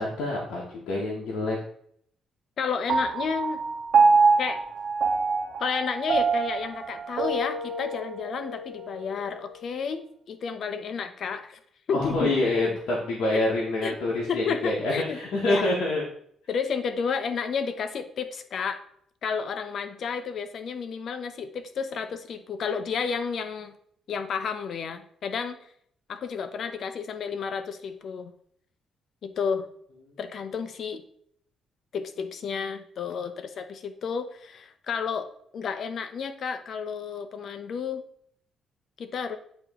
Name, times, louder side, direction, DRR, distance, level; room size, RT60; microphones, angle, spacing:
voice 1, 0.0-1.6 11.9-16.0, left 2 dB, 80° left, -4 dB, 1.2 m, -26 dB
voice 2, 2.6-3.6 4.4-4.6 5.6-11.6 11.9-12.3 12.7-12.8 13.8-14.0 14.3-15.2 15.5-15.7 16.5-18.8 19.2-23.7 24.1-25.6 26.1-28.3 29.2-29.7 30.2-31.0 31.9-35.3 35.5-38.0 39.0-39.4, left 6 dB, 60° left, 10 dB, 0.7 m, -31 dB
Piano, 2.9-9.6, right 4 dB, 65° right, 0.6 m, -25 dB
8.6 x 3.0 x 3.6 m, 0.66 s
cardioid pair, 90°, 0 cm